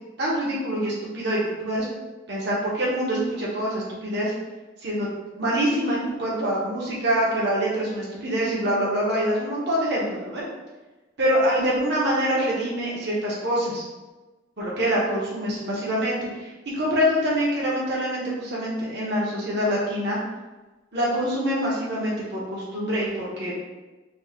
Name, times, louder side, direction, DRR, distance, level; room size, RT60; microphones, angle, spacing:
voice 1, 0.2-1.9 2.3-4.3 4.8-5.1 5.4-10.4 11.2-13.8 14.6-20.2 20.9-23.5, equal, 65° right, -6 dB, 1.0 m, -25 dB
4.0 x 2.2 x 3.5 m, 1.2 s
head